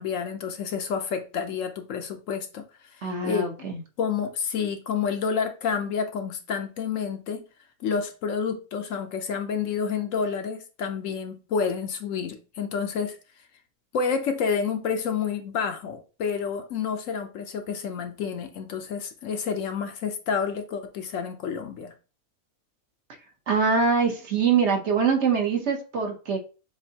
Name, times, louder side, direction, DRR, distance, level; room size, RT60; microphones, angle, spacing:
voice 1, 0.0-2.6 3.0-3.4 4.0-7.4 7.8-13.2 13.9-21.9, left 6 dB, 65° left, 6 dB, 1.0 m, -29 dB
voice 2, 3.0-3.8 23.5-26.4, right 5 dB, 55° right, 3 dB, 1.1 m, -23 dB
7.1 x 2.7 x 2.8 m, 0.33 s
omnidirectional pair, 1.5 m